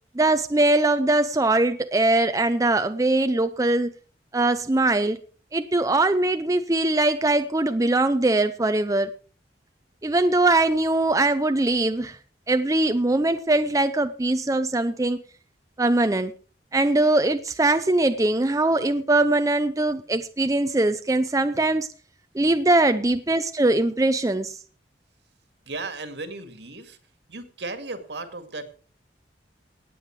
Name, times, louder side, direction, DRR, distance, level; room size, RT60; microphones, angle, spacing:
voice 1, 0.1-3.9 4.3-5.2 5.5-9.1 10.0-12.2 12.5-15.2 15.8-16.3 16.7-21.9 22.3-24.6, right 2 dB, 20° right, 0.6 m, -21 dB
voice 2, 25.7-27.0 27.3-28.7, right 3 dB, 75° right, 2.1 m, -35 dB
18.0 x 8.7 x 4.7 m
head